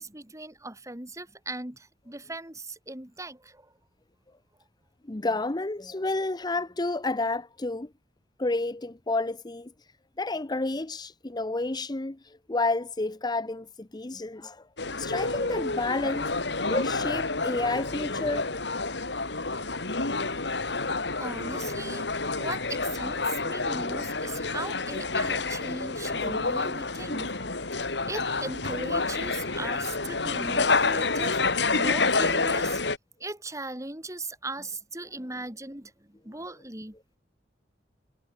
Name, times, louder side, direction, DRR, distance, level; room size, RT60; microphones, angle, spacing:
voice 1, 0.0-3.7 21.2-27.3 28.1-32.8 33.2-36.9, right 2 dB, 20° right, 3.6 m, -38 dB
voice 2, 5.1-7.9 8.4-9.7 10.2-14.6 15.0-16.3 16.7-18.5, left 2 dB, 25° left, 0.8 m, -30 dB
sound 1, 14.8-33.0, left 3 dB, 70° left, 3.2 m, -29 dB
head